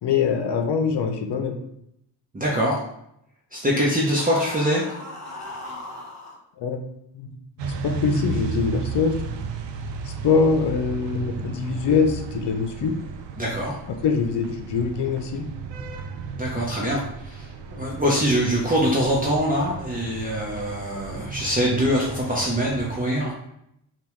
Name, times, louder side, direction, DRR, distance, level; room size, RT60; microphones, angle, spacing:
voice 1, 0.0-1.6 6.6-6.8 7.1-7.3 7.6-9.1 10.2-12.9 14.0-15.4, left 5 dB, 65° left, 6 dB, 0.8 m, -23 dB
voice 2, 2.3-2.7 3.5-4.8 13.4-13.8 16.4-17.4 17.7-23.3, equal, 20° right, -4 dB, 1.0 m, -23 dB
sound 1, 4.2-6.4, left 1 dB, 35° left, 1.6 m, -37 dB
sound 2, 7.6-23.0, right 5 dB, 70° right, 0.6 m, -34 dB
5.3 x 2.6 x 3.2 m, 0.78 s
cardioid pair, 65°, 44 cm